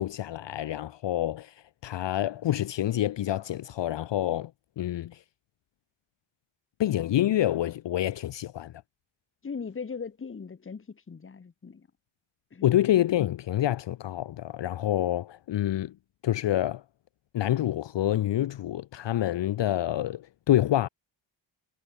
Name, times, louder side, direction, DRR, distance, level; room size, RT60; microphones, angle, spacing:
voice 1, 0.0-1.5 1.8-4.5 4.8-5.2 6.8-8.7 12.6-15.9 16.2-16.8 17.3-20.9, left 13 dB, 65° left, 0.6 m, -27 dB
voice 2, 9.4-11.9 12.5-12.7, left 5 dB, 25° left, 1.1 m, -39 dB
wide cardioid pair, 135°, 47 cm